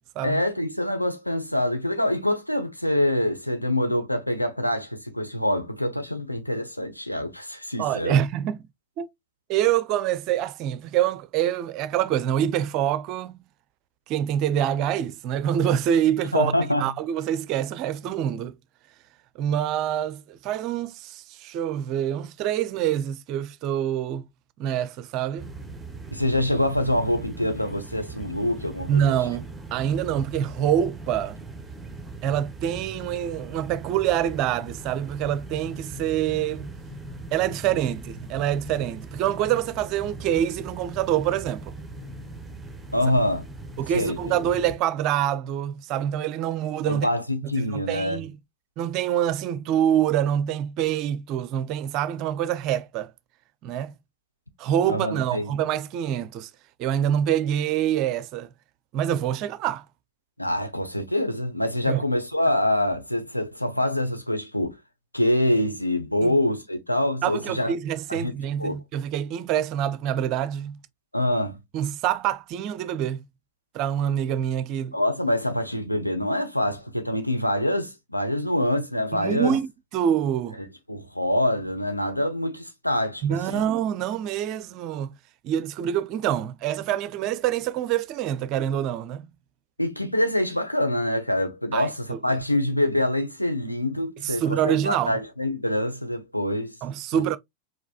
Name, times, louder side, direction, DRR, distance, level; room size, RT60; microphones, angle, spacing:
voice 1, 0.2-8.2 16.3-16.9 26.1-29.1 42.9-43.5 43.9-44.3 46.9-48.3 54.9-55.5 60.4-64.8 65.1-67.7 68.1-68.3 68.6-68.8 71.1-71.6 74.9-79.6 80.9-83.2 83.5-83.6 89.8-96.7 97.1-97.2, left 1 dB, 90° left, 0.8 m, -25 dB
voice 2, 7.8-8.6 9.0-9.1 9.5-13.4 14.1-16.5 16.8-18.5 19.4-24.3 24.6-25.5 28.9-31.4 32.2-36.7 37.3-41.8 43.8-47.1 47.7-48.4 48.8-53.1 53.6-53.9 54.6-56.5 56.8-58.5 58.9-59.8 61.9-62.0 66.2-66.3 67.2-70.8 71.7-73.2 73.7-75.0 79.1-79.7 79.9-80.6 83.2-85.2 85.4-89.2 91.7-92.2 94.2-95.1 96.8-97.4, right 10 dB, 40° right, 0.5 m, -26 dB
sound 1, 25.4-44.8, right 2 dB, 5° right, 0.9 m, -40 dB
4.7 x 3.9 x 2.3 m
figure-of-eight pair, 90°, 0 cm